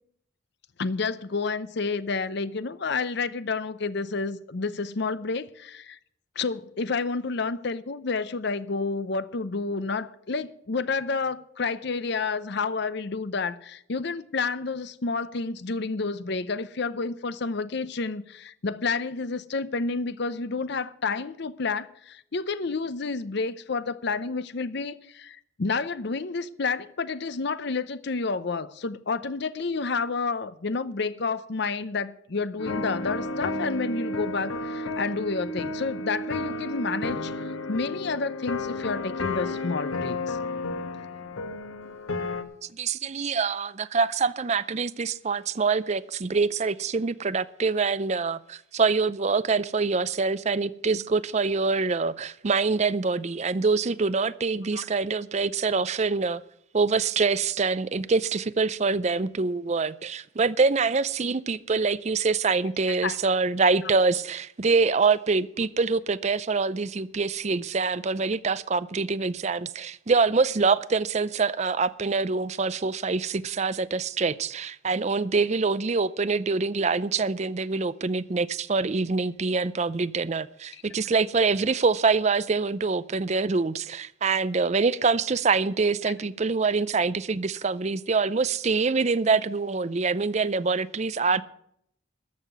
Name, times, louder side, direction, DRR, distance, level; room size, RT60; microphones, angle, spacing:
voice 1, 0.8-6.0 6.4-37.3 37.7-40.4 54.7-54.9 62.9-63.2 63.8-63.9 80.7-80.8, left 4 dB, 55° left, 0.6 m, -30 dB
sound 1, 32.6-42.4, left 2 dB, 85° left, 1.3 m, -32 dB
voice 2, 42.8-56.4 56.7-91.4, right 4 dB, 35° right, 0.4 m, -25 dB
14.0 x 5.8 x 9.3 m
head